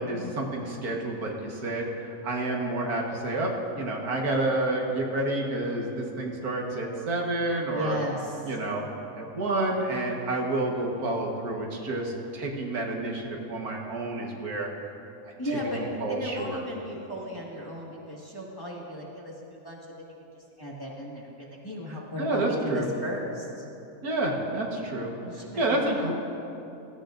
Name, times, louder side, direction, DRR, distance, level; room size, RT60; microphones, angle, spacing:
voice 1, 0.0-8.0 8.4-8.9 9.2-14.7 15.2-15.3 15.8-16.6 22.2-22.9 24.0-25.1 25.6-26.1, right 2 dB, 80° right, -1 dB, 1.9 m, -29 dB
voice 2, 7.6-8.5 15.4-23.7 25.2-26.1, equal, 15° left, -5 dB, 1.7 m, -36 dB
16.0 x 15.0 x 2.6 m, 2.8 s
omnidirectional pair, 1.6 m